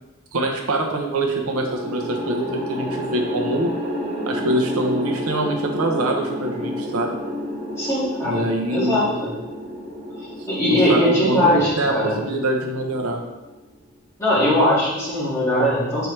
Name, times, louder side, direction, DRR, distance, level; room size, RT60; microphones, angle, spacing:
voice 1, 0.3-3.7 4.3-7.2 8.2-9.0 10.7-13.2, right 1 dB, 90° right, 2 dB, 0.9 m, -24 dB
sound 1, 1.4-13.8, equal, 35° right, 1.8 m, -30 dB
voice 2, 7.8-9.3 10.2-12.2 14.2-16.1, left 1 dB, 15° left, -9 dB, 2.1 m, -20 dB
6.9 x 4.5 x 3.3 m, 1.0 s
head